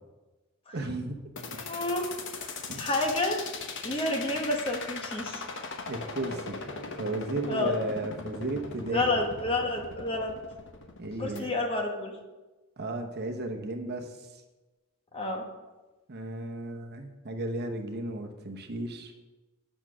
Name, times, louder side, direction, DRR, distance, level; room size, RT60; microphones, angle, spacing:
voice 1, 0.7-1.2 2.7-2.9 5.9-9.1 11.0-11.5 12.8-14.4 16.1-19.1, right 2 dB, 45° right, 4 dB, 1.0 m, -34 dB
sound 1, 1.4-11.4, left 4 dB, 55° left, 1.0 m, -39 dB
voice 2, 1.6-2.1 2.4-3.4 3.8-5.4 7.5-7.7 8.9-10.3 11.2-12.1 15.1-15.5, left 2 dB, 25° left, 2 dB, 1.1 m, -30 dB
9.0 x 6.3 x 6.1 m, 1.2 s
head